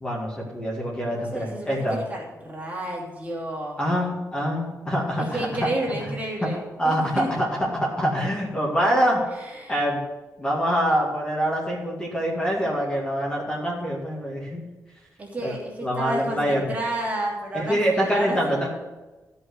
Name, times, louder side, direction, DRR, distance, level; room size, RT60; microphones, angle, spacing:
voice 1, 0.0-2.0 3.8-5.4 6.4-6.5 6.8-7.5 7.8-9.2 9.7-10.0 10.4-14.6 15.4-15.5 15.8-16.6 17.5-18.7, equal, 15° left, -3 dB, 2.0 m, -25 dB
voice 2, 1.1-3.8 5.2-7.3 9.4-9.8 15.2-18.6, right 1 dB, 25° right, -3 dB, 2.7 m, -31 dB
14.0 x 5.6 x 6.5 m, 1.2 s
wide cardioid pair, 165°, 6 cm